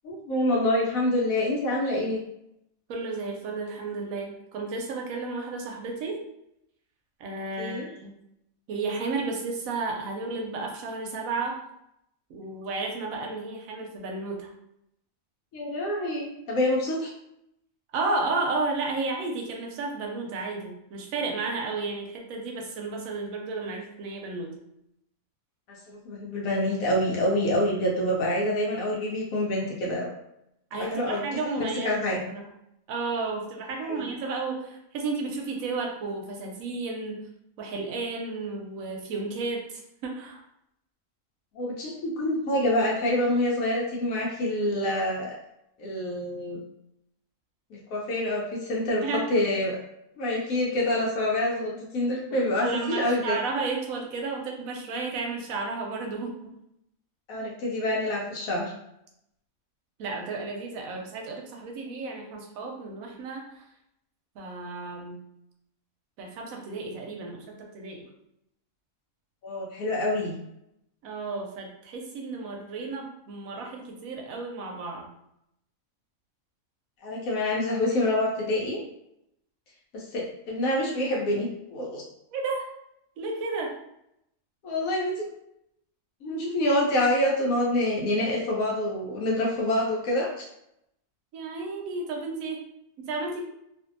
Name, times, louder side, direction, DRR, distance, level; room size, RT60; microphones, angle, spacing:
voice 1, 0.0-2.2 7.6-7.9 15.5-17.1 25.9-30.1 30.7-32.2 33.9-34.1 41.5-45.3 45.8-46.6 47.7-49.0 49.3-49.8 50.2-53.4 57.3-58.7 69.4-70.3 77.0-78.8 79.9-82.0 84.6-85.3 86.2-90.5, left 1 dB, 80° left, -3 dB, 1.0 m, -26 dB
voice 2, 2.9-6.2 7.2-8.1 8.7-11.6 12.3-14.5 17.9-24.6 30.7-32.0 32.3-32.5 32.9-37.2 37.6-40.4 49.0-49.3 52.3-56.4 60.0-63.7 64.4-65.2 66.2-68.0 71.0-75.1 82.3-82.7 83.2-83.8 91.3-92.6 93.0-93.4, right 3 dB, 85° right, 1 dB, 1.0 m, -32 dB
2.6 x 2.5 x 2.5 m, 0.80 s
omnidirectional pair, 1.4 m